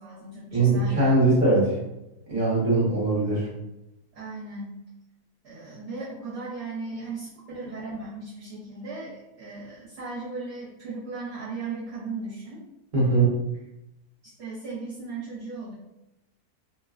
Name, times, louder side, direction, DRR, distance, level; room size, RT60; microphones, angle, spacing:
voice 1, 0.0-1.2 4.1-4.8 5.4-12.6 14.2-15.7, right 3 dB, 65° right, -9 dB, 1.2 m, -37 dB
voice 2, 0.5-1.8 2.3-3.5 12.9-13.3, right 2 dB, 40° right, -6 dB, 0.8 m, -21 dB
3.1 x 2.2 x 2.3 m, 0.92 s
omnidirectional pair, 1.8 m